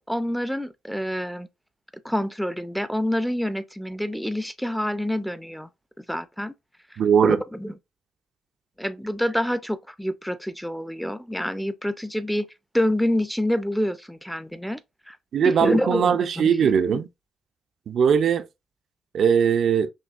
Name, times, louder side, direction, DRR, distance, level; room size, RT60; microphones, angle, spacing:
voice 1, 0.0-1.5 2.0-5.7 6.0-6.5 7.2-7.7 8.8-12.5 12.7-14.8 15.1-15.2 15.4-17.0, left 1 dB, ahead, 0.4 m, -27 dB
voice 2, 7.0-7.4 15.3-17.1 17.9-18.5 19.1-19.9, right 7 dB, 60° right, 0.4 m, -20 dB
6.1 x 2.3 x 2.4 m
cardioid pair, 90°, 0 cm